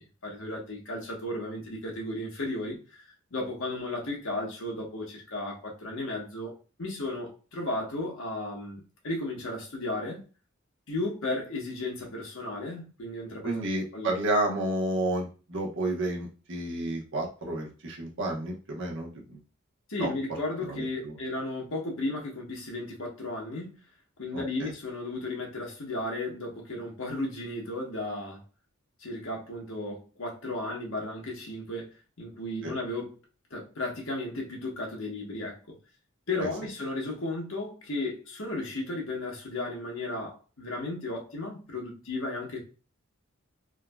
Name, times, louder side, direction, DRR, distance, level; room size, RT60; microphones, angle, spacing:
voice 1, 0.0-3.0 3.3-6.5 6.8-10.2 10.9-13.6 13.9-14.1 19.9-23.8 24.2-28.4 29.0-31.9 32.2-33.1 33.5-35.7 36.3-42.6, left 2 dB, 70° left, 1.2 m, -34 dB
voice 2, 13.4-19.4 20.0-20.1 20.6-21.2 24.3-24.7 32.6-32.7 36.4-36.5, right 1 dB, 60° right, 1.1 m, -31 dB
3.6 x 2.7 x 2.3 m
head